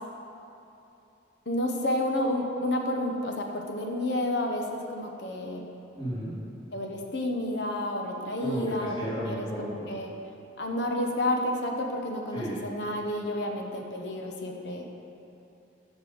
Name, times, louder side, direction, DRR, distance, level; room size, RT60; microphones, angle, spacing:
voice 1, 1.5-5.7 6.7-8.9 9.3-10.1 10.6-14.9, left 1 dB, 60° left, 2 dB, 1.0 m, -30 dB
voice 2, 6.0-6.3 8.4-9.9 12.3-12.6, equal, 25° left, -10 dB, 2.5 m, -33 dB
9.6 x 5.4 x 7.0 m, 2.8 s
head